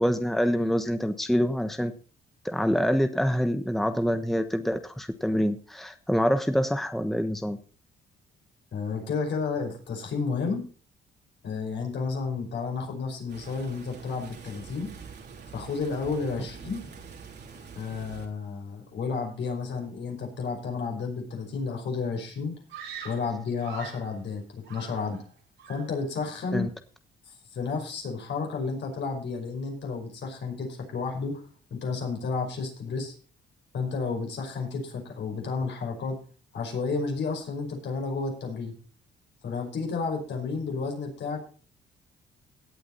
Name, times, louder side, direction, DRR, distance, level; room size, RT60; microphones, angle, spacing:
voice 1, 0.0-1.9 2.4-7.6 26.5-26.7, equal, ahead, 9 dB, 1.1 m, -26 dB
voice 2, 8.7-10.7 11.4-14.9 15.5-16.8 17.8-22.5 23.0-25.2 25.7-26.7 27.3-31.4 31.7-33.1 33.7-36.2 36.5-38.7 39.4-41.4, left 4 dB, 65° left, 2 dB, 5.5 m, -31 dB
sound 1, 13.3-18.3, right 5 dB, 55° right, 3.3 m, -45 dB
Screaming, 22.7-24.1 24.6-25.3 25.6-26.0, right 7 dB, 90° right, 5.1 m, -43 dB
17.0 x 8.5 x 4.1 m, 0.39 s
cardioid pair, 90°, 20 cm